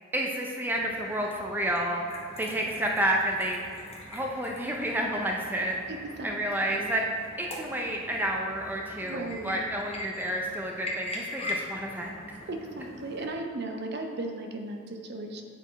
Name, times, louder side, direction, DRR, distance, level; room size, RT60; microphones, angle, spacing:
voice 1, 0.1-2.0 2.4-3.6 4.1-5.7 6.2-7.0 7.4-12.2, right 1 dB, 10° right, 0 dB, 0.4 m, -30 dB
sound 1, 0.7-13.3, left 1 dB, 30° left, 0.9 m, -42 dB
voice 2, 5.9-6.4 6.7-6.9 9.0-9.6 12.5-15.4, right 2 dB, 55° right, 3 dB, 0.6 m, -36 dB
8.3 x 3.8 x 4.0 m, 2.1 s
head